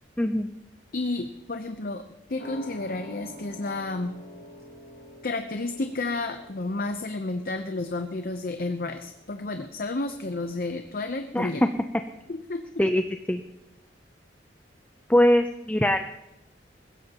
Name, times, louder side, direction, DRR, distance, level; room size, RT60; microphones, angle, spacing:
voice 1, 0.2-0.5 11.3-11.5 12.8-13.0 13.3-13.4 15.1-16.0, left 1 dB, 10° left, 7 dB, 0.5 m, -21 dB
voice 2, 0.9-2.0 2.3-4.1 5.2-11.6 12.3-12.6, left 2 dB, 55° left, 6 dB, 0.8 m, -31 dB
sound 1, 2.4-9.5 9.8-9.9, equal, 75° left, 2.7 m, -47 dB
21.0 x 16.0 x 3.0 m, 0.89 s
head